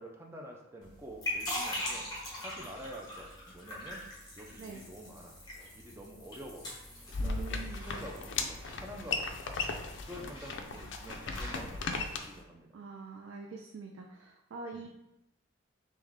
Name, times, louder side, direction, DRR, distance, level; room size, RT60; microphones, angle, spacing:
voice 1, 0.0-2.1 2.4-4.0 4.4-5.4 5.7-6.7 7.1-9.6 10.1-11.9 12.2-12.8 14.7-14.9, equal, 10° right, 0 dB, 0.5 m, -48 dB
sound 1, 0.8-12.4, left 1 dB, 20° left, 1.1 m, -43 dB
sound 2, 7.1-12.2, left 4 dB, 60° left, 0.4 m, -36 dB
voice 2, 7.2-7.9 12.7-14.9, right 4 dB, 75° right, 1 dB, 0.4 m, -45 dB
3.6 x 3.1 x 3.6 m, 0.88 s
head